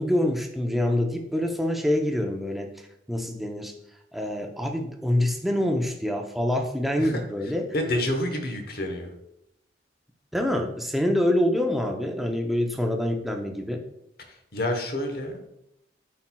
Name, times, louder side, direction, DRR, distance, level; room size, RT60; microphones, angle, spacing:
voice 1, 0.0-2.8 3.1-3.7 4.1-7.7 10.3-13.8, left 1 dB, ahead, 2 dB, 0.6 m, -26 dB
voice 2, 7.7-9.1 14.3-15.5, left 1 dB, 55° left, 4 dB, 1.0 m, -28 dB
9.8 x 4.3 x 2.2 m, 0.81 s
head